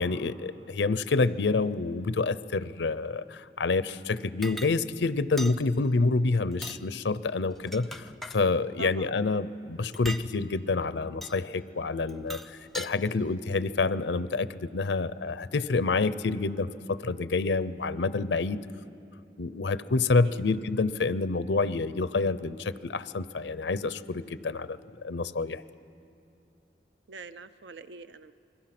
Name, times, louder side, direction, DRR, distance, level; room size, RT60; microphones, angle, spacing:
voice 1, 0.0-8.1 8.3-12.4 12.7-18.6 19.4-25.6, left 3 dB, 90° left, 15 dB, 0.6 m, -28 dB
sound 1, 4.4-4.7 5.4-5.6 6.5-6.8 7.5-8.4 9.9-10.3 11.2-11.4 12.1-12.9, equal, ahead, 0.4 m, -39 dB
voice 2, 8.8-9.2 20.2-20.4 27.1-28.3, right 4 dB, 90° right, 12 dB, 0.6 m, -43 dB
28.0 x 22.0 x 6.0 m, 2.7 s
head